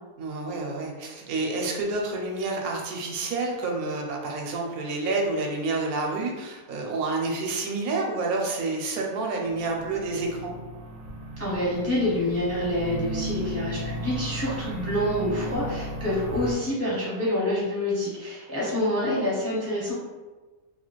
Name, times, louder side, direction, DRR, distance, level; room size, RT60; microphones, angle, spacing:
voice 1, 0.2-10.5, right 3 dB, 85° right, 0 dB, 1.1 m, -29 dB
sound 1, 9.4-16.5, right 1 dB, 65° right, 0.8 m, -35 dB
voice 2, 11.4-19.9, left 1 dB, 20° left, -7 dB, 0.4 m, -27 dB
2.7 x 2.4 x 3.0 m, 1.3 s
omnidirectional pair, 1.5 m